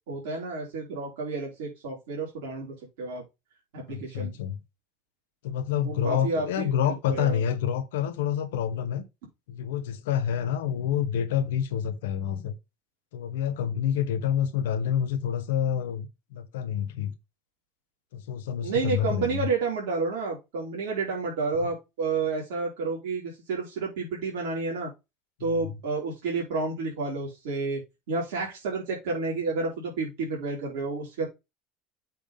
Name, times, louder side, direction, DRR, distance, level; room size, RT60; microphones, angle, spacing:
voice 1, 0.1-3.2 3.7-4.3 5.9-7.4 18.6-24.9 25.4-27.8 28.1-31.3, right 4 dB, 75° right, 3.7 m, -30 dB
voice 2, 3.9-4.6 5.4-9.0 9.5-12.5 13.1-17.1 18.1-19.5 25.4-25.7, left 9 dB, 80° left, 1.2 m, -28 dB
7.5 x 3.6 x 5.1 m
hypercardioid pair, 80°, 0 cm